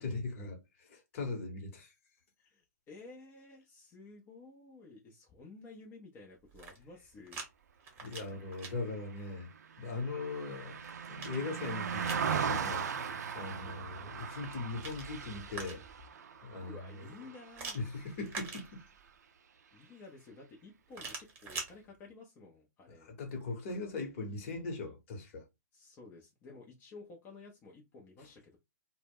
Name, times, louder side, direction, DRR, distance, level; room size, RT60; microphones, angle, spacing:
voice 1, 0.0-1.9 8.0-9.5 9.8-10.8 11.1-12.9 13.3-15.8 16.4-17.1 17.7-18.8 23.0-25.5, left 3 dB, 45° left, 0.9 m, -40 dB
voice 2, 2.4-7.4 16.3-17.8 19.7-23.1 25.7-28.6, left 3 dB, 20° left, 0.5 m, -53 dB
sound 1, 6.4-7.5 7.8-8.7 10.4-12.3 14.3-16.0 17.5-19.1 20.9-21.7, right 4 dB, 20° right, 0.9 m, -45 dB
Car passing by, 8.7-18.2 18.6-18.8, right 6 dB, 70° right, 0.4 m, -39 dB
2.1 x 2.1 x 3.5 m
hypercardioid pair, 120°, 9 cm